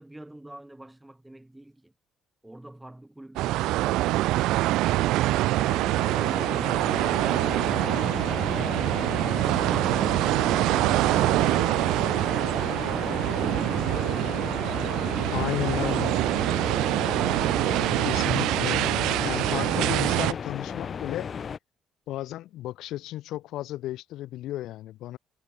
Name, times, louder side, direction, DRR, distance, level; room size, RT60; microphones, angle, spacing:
voice 1, 0.0-1.9 2.4-5.4 8.3-9.3 15.4-16.0, right 1 dB, 5° right, 1.9 m, -46 dB
sound 1, 3.4-20.3, right 17 dB, 85° right, 0.4 m, -25 dB
sound 2, 5.0-21.6, left 6 dB, 30° left, 1.3 m, -35 dB
voice 2, 15.3-16.1 18.0-21.3 22.1-25.2, left 14 dB, 70° left, 0.6 m, -33 dB
cardioid pair, 160°, 0 cm